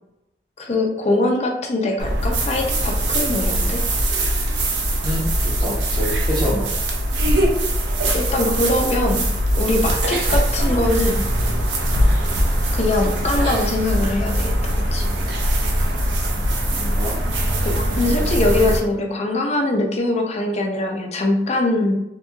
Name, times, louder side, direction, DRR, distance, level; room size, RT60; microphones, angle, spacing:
voice 1, 0.6-3.8 8.1-9.2 9.5-11.2 12.7-15.2 17.7-21.9, left 2 dB, 40° left, 2 dB, 0.5 m, -22 dB
sound 1, 2.0-18.8, right 1 dB, 80° right, 0.5 m, -21 dB
voice 2, 5.0-6.7 16.3-16.5 16.8-17.1, equal, 25° right, -6 dB, 0.6 m, -27 dB
2.9 x 2.6 x 2.2 m, 0.87 s
head